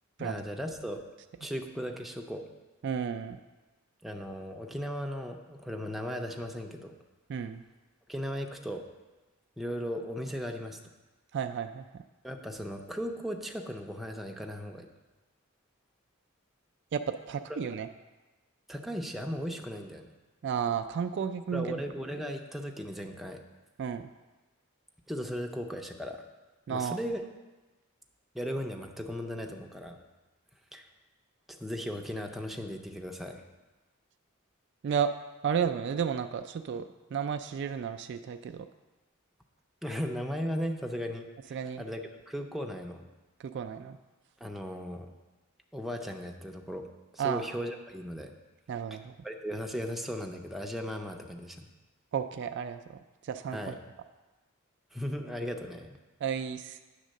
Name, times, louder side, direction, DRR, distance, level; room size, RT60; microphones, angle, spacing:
voice 1, 0.2-1.0 1.4-2.4 4.0-6.9 8.1-8.8 9.6-10.8 12.2-14.9 18.7-20.1 21.5-23.4 25.1-26.2 26.7-27.2 28.3-30.0 30.7-30.9 31.5-33.4 39.8-43.1 44.4-45.1 45.7-46.9 47.1-48.3 49.2-51.7 53.5-53.7 54.9-56.0, equal, ahead, 2 dB, 0.5 m, -37 dB
voice 2, 2.8-3.4 7.3-7.6 11.3-12.0 16.9-17.9 20.4-21.8 23.8-24.1 26.7-27.0 34.8-35.1 35.4-38.7 41.5-41.8 43.4-44.0 47.2-47.5 48.7-49.1 52.1-53.8 56.2-56.8, right 7 dB, 55° right, 8 dB, 0.3 m, -33 dB
9.0 x 3.6 x 6.4 m, 1.2 s
head